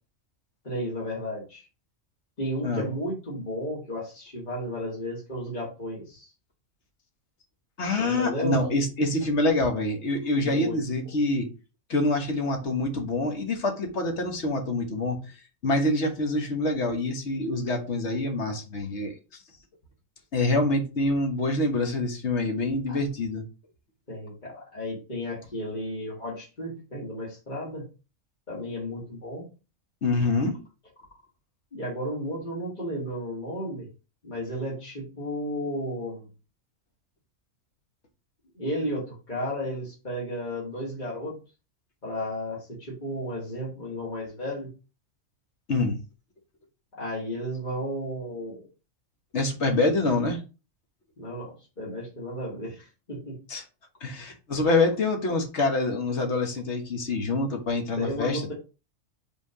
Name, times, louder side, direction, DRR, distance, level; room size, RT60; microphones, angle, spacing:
voice 1, 0.6-1.7 2.4-6.3 7.9-8.6 10.4-10.8 22.9-23.0 24.1-27.9 28.5-29.5 31.7-33.9 34.2-36.3 38.6-41.4 42.0-44.7 47.0-48.7 51.2-53.4 58.0-58.5, equal, 35° left, 2.1 m, -33 dB
voice 2, 7.8-11.5 11.9-15.2 15.6-19.1 20.3-23.4 30.0-30.6 45.7-46.0 49.3-50.4 53.5-53.6 54.0-58.5, left 2 dB, 60° left, 1.6 m, -26 dB
5.4 x 3.8 x 4.8 m
omnidirectional pair, 1.4 m